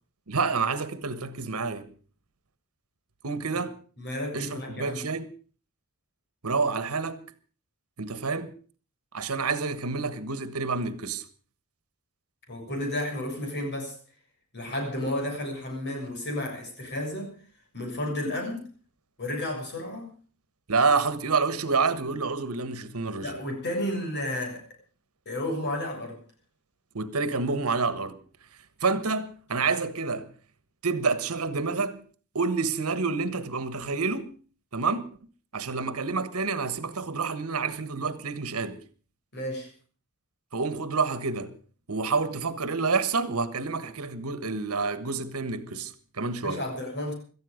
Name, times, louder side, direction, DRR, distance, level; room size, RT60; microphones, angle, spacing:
voice 1, 0.3-1.9 3.2-3.8 4.3-5.3 6.4-7.2 8.0-8.6 9.1-11.2 20.7-23.4 26.9-28.2 28.8-30.3 30.8-32.0 32.3-34.3 34.7-35.0 35.5-38.8 40.5-41.5 41.9-46.6, right 4 dB, 75° right, 1.3 m, -28 dB
voice 2, 4.0-5.1 12.5-14.0 14.5-17.4 17.7-18.7 19.2-20.1 23.2-24.6 25.2-26.2 39.3-39.7 46.4-47.1, left 1 dB, 50° left, 6.6 m, -32 dB
18.0 x 13.5 x 5.2 m
head